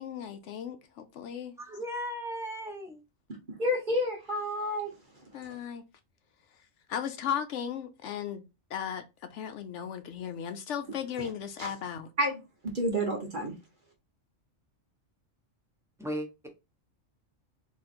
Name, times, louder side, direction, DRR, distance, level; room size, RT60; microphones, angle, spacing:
voice 1, 0.0-1.5 5.3-5.8 6.9-8.4 8.7-9.0 9.3-12.1, left 8 dB, 70° left, 0.9 m, -36 dB
voice 2, 1.6-3.0 16.0-16.5, equal, ahead, 0.9 m, -36 dB
voice 3, 3.6-4.9 11.6-11.7 12.2-12.4 12.7-13.5, equal, 40° right, 1.3 m, -29 dB
3.8 x 3.0 x 4.3 m
omnidirectional pair, 1.3 m